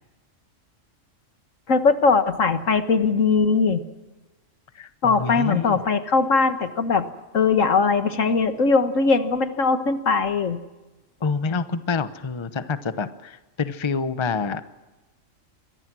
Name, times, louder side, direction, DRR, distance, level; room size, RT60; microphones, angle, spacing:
voice 1, 1.7-3.8 5.0-7.1 7.3-10.6, left 4 dB, 75° left, 9 dB, 1.8 m, -20 dB
voice 2, 4.7-5.8 11.2-14.6, left 5 dB, 25° left, 12 dB, 0.9 m, -27 dB
27.0 x 22.5 x 6.2 m, 1.1 s
omnidirectional pair, 1.3 m